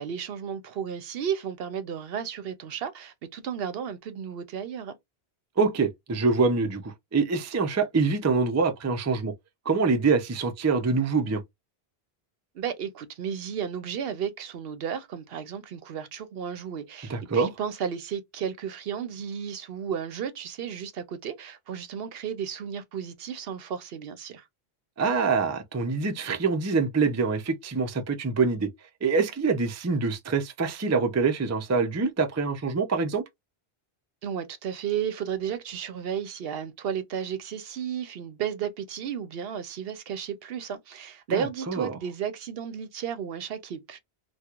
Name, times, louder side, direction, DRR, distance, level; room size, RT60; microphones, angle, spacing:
voice 1, 0.0-5.0 12.5-24.4 34.2-44.0, right 8 dB, 70° right, 0.8 m, -33 dB
voice 2, 5.6-9.3 9.7-11.4 17.1-17.5 25.0-28.7 29.0-33.2 41.3-42.0, right 4 dB, 25° right, 0.4 m, -25 dB
4.4 x 2.3 x 2.4 m
omnidirectional pair, 1.1 m